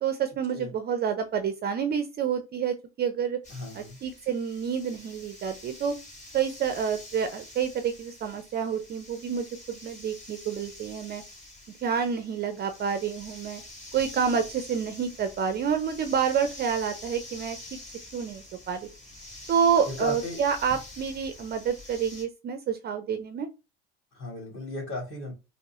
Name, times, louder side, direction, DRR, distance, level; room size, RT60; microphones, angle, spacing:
voice 1, 0.0-3.4 3.7-6.0 6.3-11.2 11.8-13.6 13.9-17.6 18.1-18.9 19.5-23.5, right 7 dB, 30° right, 9 dB, 0.5 m, -28 dB
sound 1, 3.4-22.2, left 1 dB, 20° left, 1.5 m, -46 dB
voice 2, 3.5-4.0 19.8-20.4 24.1-25.3, left 2 dB, 35° left, 1 dB, 2.3 m, -35 dB
5.1 x 2.0 x 2.9 m, 0.28 s
hypercardioid pair, 80°, 34 cm